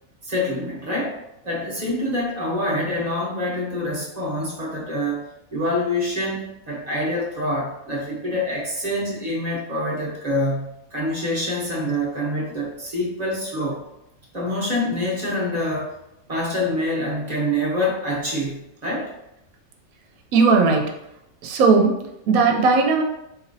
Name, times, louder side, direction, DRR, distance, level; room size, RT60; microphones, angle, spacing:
voice 1, 0.2-1.2 1.4-5.2 5.5-13.8 14.3-16.0 16.3-19.1, left 1 dB, 35° right, -5 dB, 0.9 m, -26 dB
voice 2, 20.3-20.9 21.4-23.0, right 4 dB, 85° right, 3 dB, 1.0 m, -17 dB
4.1 x 2.9 x 2.6 m, 0.85 s
omnidirectional pair, 1.4 m